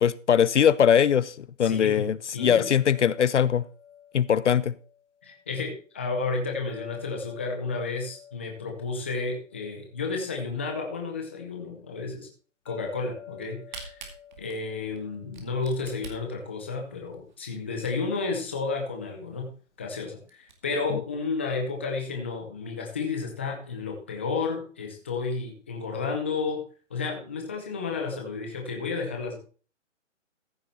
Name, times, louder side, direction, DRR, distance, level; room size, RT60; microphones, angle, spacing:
voice 1, 0.0-3.6 4.1-4.7, left 8 dB, 65° left, 20 dB, 0.6 m, -21 dB
voice 2, 1.6-2.7 5.2-12.3 12.7-14.0 14.4-19.5 19.8-26.6 26.9-29.4, left 4 dB, 10° left, 2 dB, 0.6 m, -32 dB
sound 1, 2.4-5.5 6.7-10.2 12.7-15.7, left 9 dB, 80° left, 3.0 m, -48 dB
Camera, 13.3-18.3 18.8-18.9 19.1-19.2 19.7-19.8 20.1-20.5, right 5 dB, 35° right, 2.2 m, -45 dB
14.5 x 6.9 x 4.2 m, 0.39 s
hypercardioid pair, 170°, 38 cm